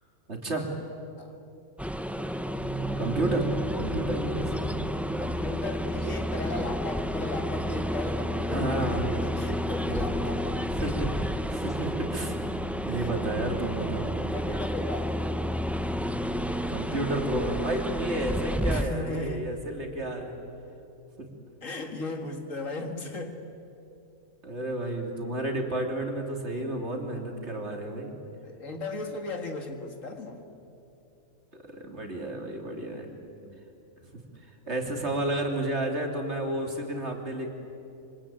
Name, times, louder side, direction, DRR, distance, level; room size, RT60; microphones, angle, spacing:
voice 1, 0.3-0.7 3.0-4.9 8.5-9.1 9.9-10.2 10.8-12.3 12.8-14.1 16.7-20.4 21.2-21.3 24.4-28.2 31.5-33.1 34.7-37.5, right 1 dB, 50° right, 2 dB, 3.3 m, -31 dB
sound 1, 1.8-18.8, equal, ahead, 0.6 m, -30 dB
voice 2, 5.2-10.6 12.9-13.2 14.3-15.2 18.7-19.5 21.6-23.4 26.6-26.7 28.4-30.4 32.5-32.6 33.4-33.5, left 2 dB, 65° left, 5 dB, 2.4 m, -36 dB
25.5 x 24.5 x 8.9 m, 2.8 s
omnidirectional pair, 1.4 m